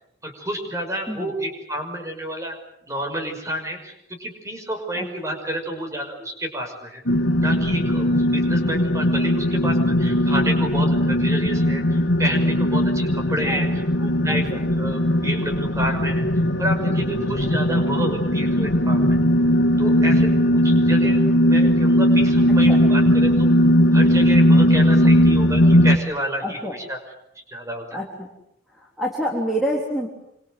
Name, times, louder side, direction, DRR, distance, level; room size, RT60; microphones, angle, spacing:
voice 1, 0.2-2.6 2.9-7.0 7.4-13.7 14.0-16.2 16.6-19.2 19.8-23.5 23.9-27.0 27.5-28.0, equal, 15° right, 4 dB, 5.8 m, -30 dB
sound 1, 7.1-26.0, equal, 80° left, 1.9 m, -18 dB
voice 2, 14.3-14.6 17.4-17.6 22.5-22.8 26.4-26.7 27.9-28.3 28.7-30.1, equal, ahead, -2 dB, 3.6 m, -28 dB
27.5 x 26.0 x 7.9 m, 0.79 s
head